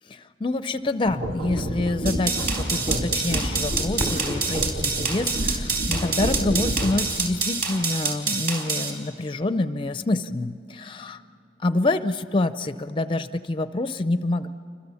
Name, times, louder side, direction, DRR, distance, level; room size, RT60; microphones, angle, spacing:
voice 1, 0.1-11.2 11.6-14.5, left 2 dB, 30° left, 11 dB, 0.5 m, -27 dB
sound 1, 1.0-7.2, equal, 80° right, 2.2 m, -29 dB
sound 2, 2.1-8.9, right 4 dB, 55° right, 4.0 m, -27 dB
Fireworks, 4.0-6.7 7.4-7.5 8.2-8.6 10.5-10.7, equal, 35° right, 5.2 m, -37 dB
29.0 x 25.0 x 7.0 m, 2.7 s
head